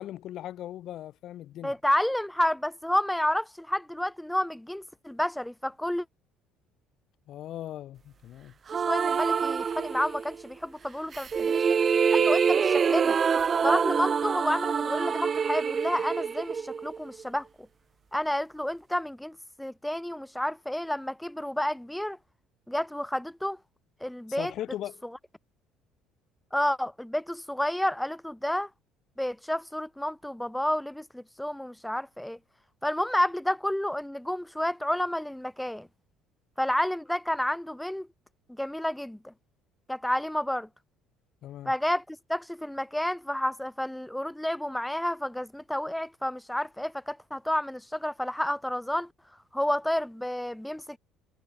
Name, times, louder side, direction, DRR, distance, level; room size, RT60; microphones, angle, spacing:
voice 1, 0.0-1.7 7.3-8.5 24.4-25.0 41.4-41.7, left 12 dB, 50° left, 2.2 m, -38 dB
voice 2, 1.6-6.0 8.7-11.8 12.1-13.2 13.6-17.5 18.1-22.2 22.7-23.6 24.0-24.5 26.5-28.7 29.2-32.4 32.8-35.9 36.6-38.1 38.6-39.3 39.9-40.7 41.6-49.1 49.5-51.0, left 1 dB, 5° left, 1.2 m, -30 dB
sound 1, 8.7-10.4 11.1-17.2, right 6 dB, 35° right, 1.1 m, -26 dB
figure-of-eight pair, 55°, 0 cm